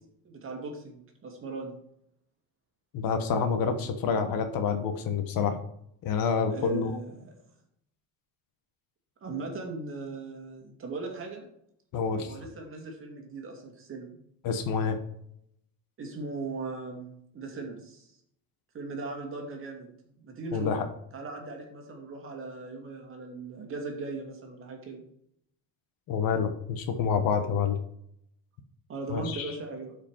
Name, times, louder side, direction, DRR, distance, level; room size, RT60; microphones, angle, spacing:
voice 1, 0.2-1.8 6.5-7.3 9.2-11.5 12.2-14.2 16.0-18.1 18.7-25.0 28.9-30.0, right 3 dB, 35° right, 1 dB, 2.2 m, -39 dB
voice 2, 2.9-5.6 6.0-7.0 11.9-12.3 14.4-15.0 20.5-20.9 26.1-27.8 29.1-29.5, left 6 dB, 65° left, 7 dB, 1.3 m, -28 dB
12.0 x 5.1 x 4.7 m, 0.71 s
cardioid pair, 160°, 38 cm